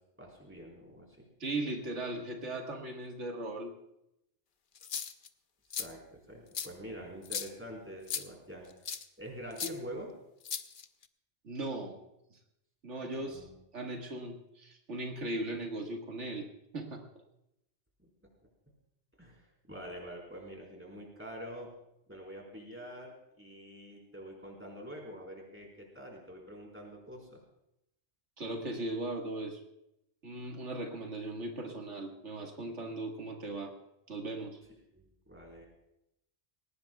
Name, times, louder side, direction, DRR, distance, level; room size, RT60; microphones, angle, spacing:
voice 1, 0.2-1.3 5.8-8.7 9.2-10.1 13.2-13.6 18.0-18.1 19.2-21.7 22.1-27.4 34.9-35.6, equal, 10° right, -1 dB, 4.3 m, -46 dB
voice 2, 1.4-3.7 11.4-12.0 12.3-12.4 12.8-13.5 13.7-17.0 28.4-29.6 30.2-33.7 34.1-34.6, right 2 dB, 90° right, 1 dB, 2.1 m, -38 dB
sound 1, 4.8-5.3 5.7-5.9 6.5-6.7 7.2-7.5 8.1-8.2 8.9-9.0 9.6-9.7 10.4-11.0, left 7 dB, 50° left, 0.8 m, -36 dB
20.5 x 18.5 x 2.3 m, 0.84 s
omnidirectional pair, 1.2 m